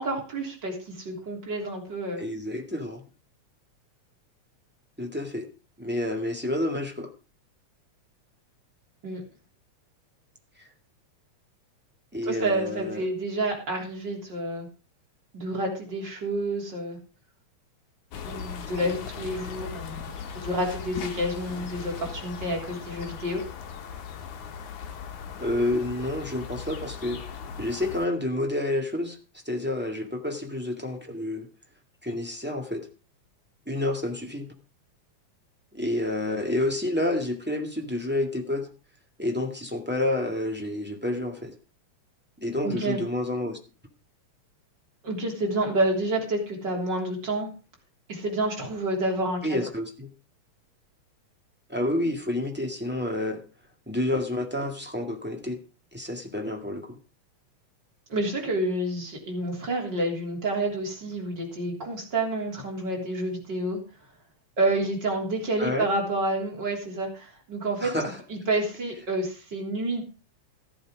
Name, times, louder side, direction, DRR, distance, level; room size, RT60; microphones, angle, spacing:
voice 1, 0.0-2.2 9.0-9.2 12.2-14.7 15.3-17.0 18.3-23.5 42.6-43.0 45.0-47.5 48.1-49.6 58.1-63.8 64.6-68.0 68.3-70.0, right 1 dB, 35° right, -1 dB, 4.0 m, -29 dB
voice 2, 2.2-3.0 5.0-5.5 5.8-7.1 12.1-13.0 25.4-27.2 27.6-29.1 29.4-31.5 32.0-32.9 33.7-34.5 35.7-38.7 39.2-41.5 42.4-43.6 49.4-50.1 51.7-53.4 53.9-55.6 55.9-57.0 65.6-65.9 67.8-68.2, left 1 dB, 5° right, 2 dB, 1.6 m, -29 dB
sound 1, 18.1-28.1, left 7 dB, 90° left, 2.9 m, -38 dB
15.0 x 7.8 x 5.1 m, 0.35 s
omnidirectional pair, 3.3 m